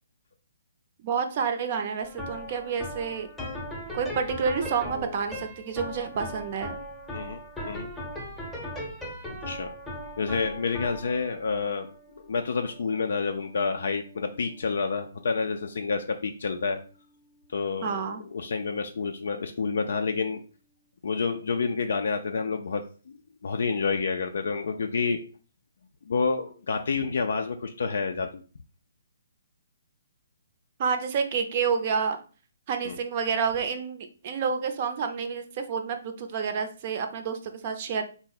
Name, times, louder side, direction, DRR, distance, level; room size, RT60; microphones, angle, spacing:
voice 1, 1.0-3.3 3.9-6.7 17.8-18.2 30.8-32.2 32.7-38.0, right 6 dB, 40° right, 6 dB, 0.5 m, -29 dB
sound 1, 2.0-19.2, left 1 dB, 5° left, 0.7 m, -40 dB
voice 2, 7.1-7.9 9.5-9.7 10.2-11.9 12.2-16.8 17.5-20.4 21.0-22.8 23.4-25.2 26.1-28.4 32.9-33.0, left 4 dB, 65° left, 5 dB, 0.3 m, -29 dB
3.5 x 2.0 x 3.9 m, 0.39 s
figure-of-eight pair, 140°, 0 cm